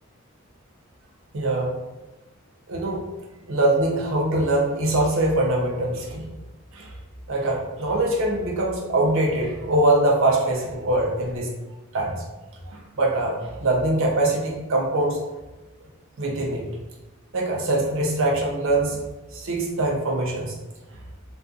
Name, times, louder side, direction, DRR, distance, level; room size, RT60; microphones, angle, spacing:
voice 1, 1.3-1.7 2.7-3.0 3.5-6.2 6.7-6.9 7.3-11.5 11.9-12.2 12.7-15.2 16.2-16.7 17.3-19.0 19.3-20.5, right 1 dB, 65° right, -1 dB, 0.6 m, -23 dB
2.5 x 2.4 x 2.3 m, 1.1 s
head